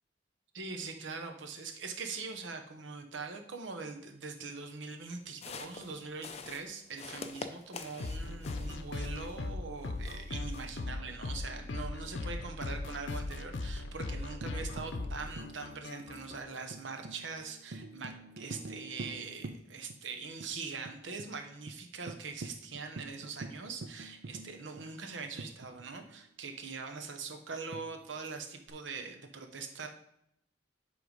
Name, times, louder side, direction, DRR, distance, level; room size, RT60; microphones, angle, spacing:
voice 1, 0.5-29.9, right 4 dB, 85° right, 5 dB, 1.0 m, -42 dB
sound 1, 5.3-9.5 9.8-10.8, left 4 dB, 35° left, 0.5 m, -46 dB
sound 2, 8.0-16.4, left 2 dB, 85° left, 0.7 m, -39 dB
Tambourine, 14.4-20.1 20.4-20.5 20.8-21.3 21.7-21.8 22.1-26.2 27.7-28.7, right 2 dB, 60° right, 0.5 m, -47 dB
7.9 x 3.5 x 5.2 m, 0.77 s
head